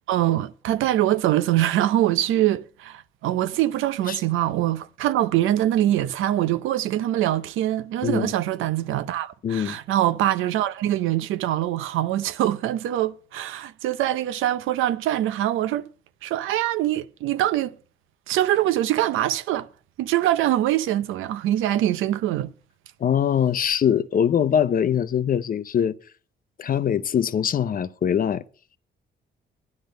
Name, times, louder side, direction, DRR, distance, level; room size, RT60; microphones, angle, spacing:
voice 1, 0.1-15.9 16.2-17.7 18.3-19.7 20.0-22.5, right 13 dB, 85° right, 0.7 m, -23 dB
voice 2, 8.0-8.3 9.4-9.8 23.0-26.0 26.6-28.4, left 8 dB, 45° left, 0.6 m, -22 dB
10.5 x 10.0 x 5.3 m
cardioid pair, 90°, 20 cm